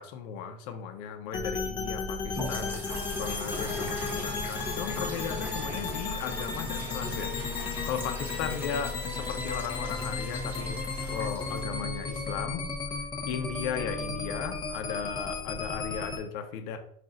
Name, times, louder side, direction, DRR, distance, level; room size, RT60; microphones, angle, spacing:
voice 1, 0.0-10.8 11.1-12.7 13.3-16.8, left 7 dB, 70° left, 6 dB, 0.8 m, -36 dB
sound 1, 1.3-16.2, left 4 dB, 20° left, 0.7 m, -34 dB
sound 2, 2.3-12.5, left 1 dB, 10° right, 1.0 m, -39 dB
5.3 x 2.5 x 3.8 m, 0.66 s
cardioid pair, 150°, 21 cm